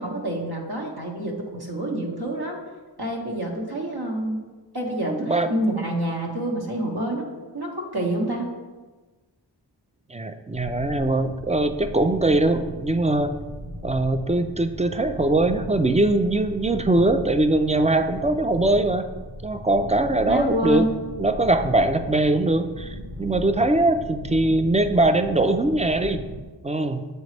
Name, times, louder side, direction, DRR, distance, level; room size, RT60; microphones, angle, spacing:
voice 1, 0.0-2.6 3.0-4.4 4.7-7.3 7.5-8.5 20.3-20.9, right 1 dB, 55° right, -1 dB, 1.3 m, -27 dB
voice 2, 5.0-5.5 10.1-13.4 13.8-19.1 19.4-20.9 21.2-26.2 26.6-27.1, right 2 dB, 15° right, 9 dB, 0.3 m, -21 dB
sound 1, 10.5-26.4, equal, 40° right, 1.2 m, -38 dB
7.9 x 3.9 x 3.3 m, 1.3 s
wide cardioid pair, 45°, 44 cm